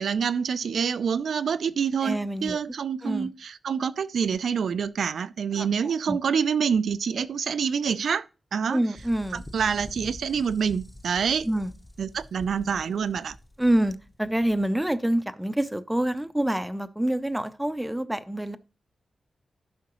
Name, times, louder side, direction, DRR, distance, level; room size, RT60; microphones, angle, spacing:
voice 1, 0.0-8.2 8.5-8.8 9.3-11.5 12.0-13.3, right 6 dB, 80° right, 0.5 m, -27 dB
voice 2, 2.0-2.6 3.0-3.3 5.5-6.2 8.7-9.4 11.4-11.7 13.6-18.6, right 1 dB, 5° right, 0.6 m, -27 dB
sound 1, 8.9-14.8, left 1 dB, 15° left, 0.9 m, -46 dB
12.0 x 5.7 x 3.0 m
wide cardioid pair, 125°, 0 cm